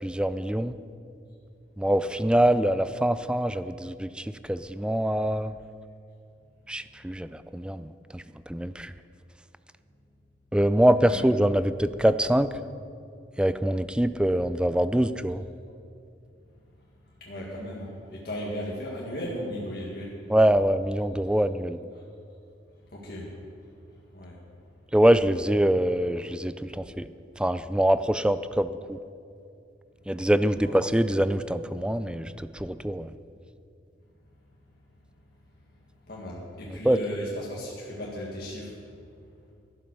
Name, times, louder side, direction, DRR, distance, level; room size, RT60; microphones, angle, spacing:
voice 1, 0.0-0.7 1.8-5.5 6.7-8.2 8.5-8.9 10.5-12.5 13.4-15.4 20.3-21.8 24.9-27.1 27.4-29.0 30.1-33.1 36.8-37.0, right 1 dB, 5° right, 12 dB, 0.3 m, -24 dB
voice 2, 17.2-20.3 21.3-21.4 21.9-22.0 22.9-23.4 24.1-24.4 26.7-26.8 30.6-30.7 36.1-38.8, equal, 55° left, -4 dB, 1.9 m, -36 dB
12.5 x 11.0 x 6.7 m, 2.5 s
head